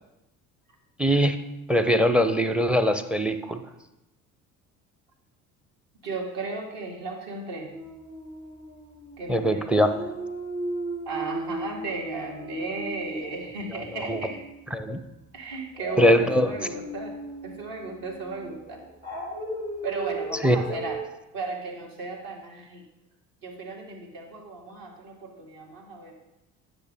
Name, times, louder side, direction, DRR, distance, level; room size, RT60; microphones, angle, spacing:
voice 1, 1.0-1.4 1.7-3.6 9.3-9.9 14.1-14.2 14.7-15.0 16.0-16.5 20.4-20.6, equal, 5° right, 10 dB, 0.5 m, -21 dB
voice 2, 6.0-7.7 9.2-9.7 11.1-14.4 15.3-17.1 17.4-18.8 19.8-21.0 21.3-22.8 23.4-26.2, right 3 dB, 55° right, 0 dB, 1.9 m, -35 dB
Dog, 7.7-9.3 9.6-14.7 15.7-21.0, right 1 dB, 80° right, 2.5 m, -36 dB
10.0 x 6.4 x 3.5 m, 0.92 s
figure-of-eight pair, 50°, 43 cm